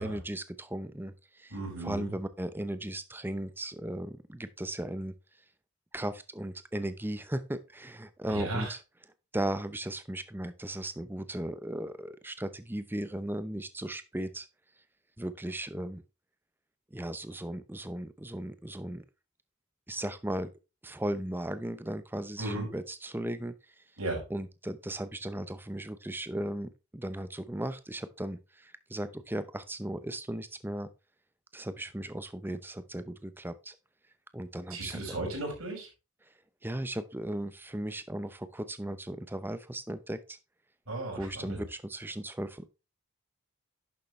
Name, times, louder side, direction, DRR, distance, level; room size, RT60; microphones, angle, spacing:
voice 1, 0.0-1.5 1.8-5.1 5.9-8.8 9.3-14.5 15.2-16.0 16.9-19.0 19.9-20.5 20.8-23.8 24.3-30.9 31.5-33.8 34.3-35.2 36.6-40.4 41.2-42.7, right 1 dB, 10° right, 0.7 m, -36 dB
voice 2, 1.5-2.1 8.2-8.7 22.4-22.7 24.0-24.2 34.7-35.9 40.9-41.6, right 2 dB, 75° right, 5.5 m, -35 dB
11.0 x 6.7 x 3.2 m
head